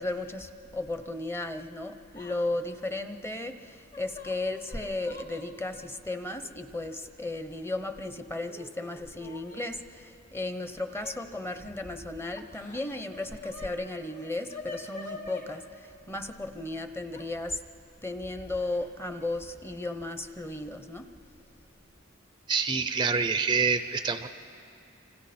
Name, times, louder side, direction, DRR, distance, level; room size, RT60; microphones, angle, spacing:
voice 1, 0.0-17.6 18.0-21.1, left 2 dB, 10° left, 9 dB, 0.8 m, -35 dB
Yell / Crying sobbing, 2.1-2.5 2.8-2.9 3.7-5.5 6.4-6.5 7.5-8.1 8.4-9.7 10.9-11.2 12.3-13.7 14.0-15.5 17.1-17.3 18.5-18.9 19.2-19.4 20.5-20.6 21.0-21.3, left 3 dB, 40° left, 2.0 m, -45 dB
voice 2, 22.5-24.3, right 5 dB, 25° right, 10 dB, 0.5 m, -26 dB
28.5 x 26.5 x 4.3 m, 2.6 s
head